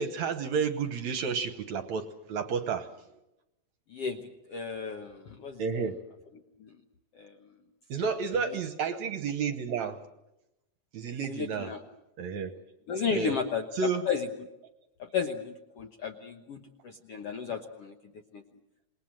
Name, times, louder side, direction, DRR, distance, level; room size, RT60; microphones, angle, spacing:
voice 1, 0.0-2.9 5.6-5.9 7.9-10.0 10.9-11.7 12.2-12.5 13.1-13.4 13.8-14.1, right 6 dB, 65° right, 9 dB, 2.0 m, -31 dB
voice 2, 3.9-5.9 6.6-6.7 7.1-7.3 8.3-8.6 11.1-11.8 12.9-13.7 14.0-14.3 15.0-18.0 18.3-18.4, left 6 dB, 65° left, 5 dB, 1.5 m, -34 dB
28.0 x 21.0 x 7.6 m, 0.92 s
omnidirectional pair, 4.2 m